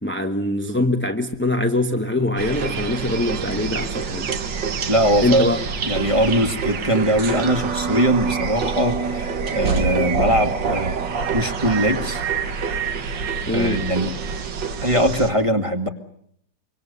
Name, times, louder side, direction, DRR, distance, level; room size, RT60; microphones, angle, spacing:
voice 1, 0.0-4.3 5.2-5.6 13.5-13.8, left 1 dB, 10° left, 1.0 m, -23 dB
sound 1, 2.4-15.3, right 5 dB, 80° right, 2.2 m, -26 dB
voice 2, 4.9-5.5 5.8-11.0 11.3-12.2 13.5-14.1 14.8-15.9, equal, 15° right, 2.1 m, -21 dB
25.5 x 24.5 x 6.8 m
omnidirectional pair, 1.9 m